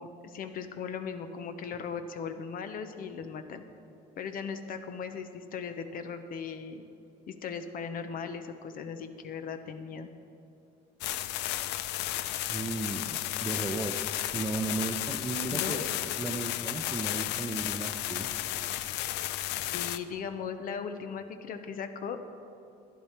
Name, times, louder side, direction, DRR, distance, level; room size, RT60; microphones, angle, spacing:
voice 1, 0.0-3.6 4.2-6.8 7.3-10.1 15.5-15.9 19.7-22.2, left 6 dB, 55° left, 8 dB, 0.8 m, -38 dB
sound 1, 11.0-20.0, left 14 dB, 90° left, 0.4 m, -33 dB
voice 2, 12.5-15.8 16.2-18.3, right 3 dB, 15° right, 7 dB, 0.6 m, -35 dB
11.5 x 10.5 x 4.4 m, 2.6 s
cardioid pair, 110°, 17 cm